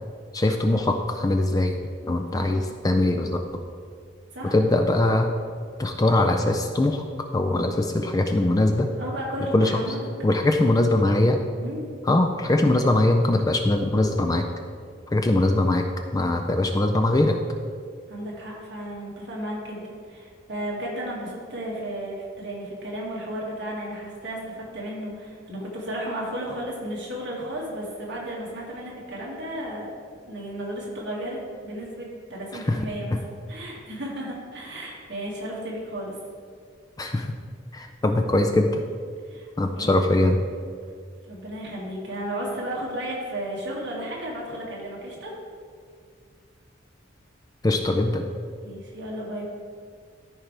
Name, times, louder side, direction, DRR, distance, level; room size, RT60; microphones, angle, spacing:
voice 1, 0.3-1.7 2.1-3.4 4.5-5.3 5.8-7.1 7.3-8.9 9.5-10.0 10.2-11.4 12.0-14.5 15.1-17.4 32.5-32.8 33.1-33.2 37.0-37.4 37.7-38.8 39.6-40.4 47.6-48.2, left 2 dB, 15° left, 5 dB, 0.3 m, -22 dB
voice 2, 9.0-10.1 11.6-11.9 18.1-29.9 30.3-33.2 33.5-36.1 39.2-39.5 39.7-40.0 41.3-45.4 48.6-49.4, right 1 dB, 55° right, -4 dB, 2.1 m, -34 dB
13.5 x 4.6 x 3.3 m, 2.1 s
head